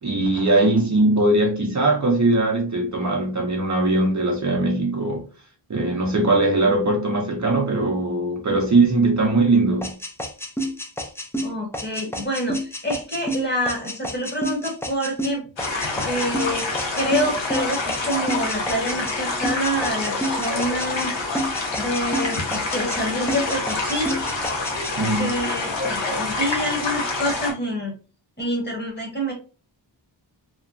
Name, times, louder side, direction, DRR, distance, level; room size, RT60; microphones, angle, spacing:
voice 1, 0.0-5.2 5.7-9.9 25.0-25.3, right 2 dB, 40° right, 0.6 m, -20 dB
sound 1, 9.8-19.2 19.4-21.1 21.3-23.0 23.3-24.9, equal, 5° left, 0.4 m, -29 dB
voice 2, 11.4-15.4 15.9-16.7 17.0-21.1 21.8-24.2 25.2-27.9 28.4-29.3, equal, 25° left, 1.0 m, -27 dB
sound 2, 15.6-27.5, left 3 dB, 75° left, 0.9 m, -27 dB
2.9 x 2.1 x 2.4 m
wide cardioid pair, 90°, 45 cm